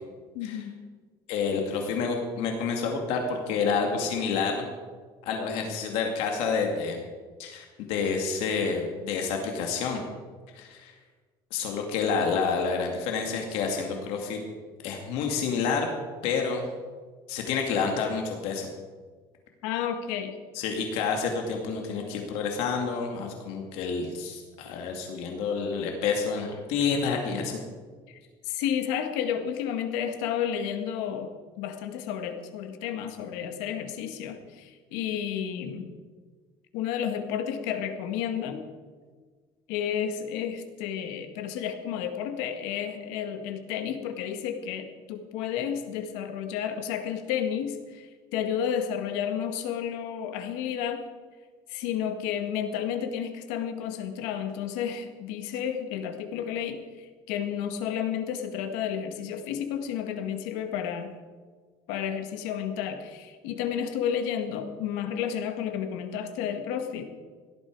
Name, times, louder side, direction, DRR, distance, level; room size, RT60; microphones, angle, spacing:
voice 1, 0.3-0.7 19.6-20.3 28.1-28.2 28.4-31.3 31.6-35.9 36.7-38.6 39.7-51.0 51.7-61.1 61.9-67.0, left 8 dB, 85° left, 7 dB, 1.8 m, -31 dB
voice 2, 1.3-4.6 5.2-7.0 7.4-10.0 10.5-10.9 11.5-14.4 14.8-15.9 16.2-16.6 17.3-18.7 20.5-27.6, left 5 dB, 70° left, 2 dB, 2.3 m, -29 dB
17.0 x 13.0 x 4.7 m, 1.5 s
cardioid pair, 160°, 11 cm